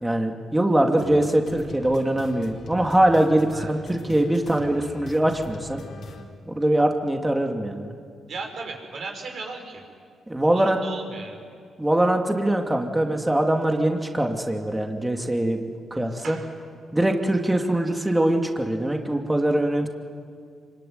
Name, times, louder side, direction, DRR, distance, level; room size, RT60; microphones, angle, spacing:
voice 1, 0.0-5.8 6.5-7.9 10.3-10.8 11.8-16.4 16.9-19.9, right 1 dB, 15° right, 3 dB, 2.7 m, -22 dB
sound 1, 1.0-6.2, left 3 dB, 65° left, 4.4 m, -42 dB
voice 2, 8.3-9.8 10.3-11.4 16.2-16.5, right 4 dB, 60° right, 2 dB, 6.1 m, -36 dB
25.5 x 24.0 x 9.7 m, 2.2 s
supercardioid pair, 60°, 0 cm